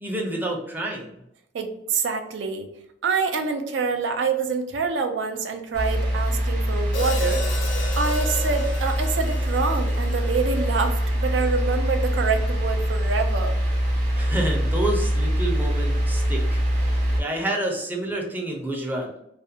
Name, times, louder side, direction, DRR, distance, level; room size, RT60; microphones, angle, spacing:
voice 1, 0.0-1.2 14.2-16.9 17.2-19.1, right 1 dB, 10° right, 0 dB, 0.5 m, -29 dB
voice 2, 1.5-2.7 3.0-7.5 8.0-13.5, right 4 dB, 85° right, 6 dB, 0.4 m, -26 dB
sound 1, 5.7-17.2, equal, 45° right, 0.7 m, -24 dB
Hi-hat, 6.9-11.2, left 3 dB, 85° left, 0.5 m, -34 dB
2.4 x 2.1 x 2.7 m, 0.78 s
head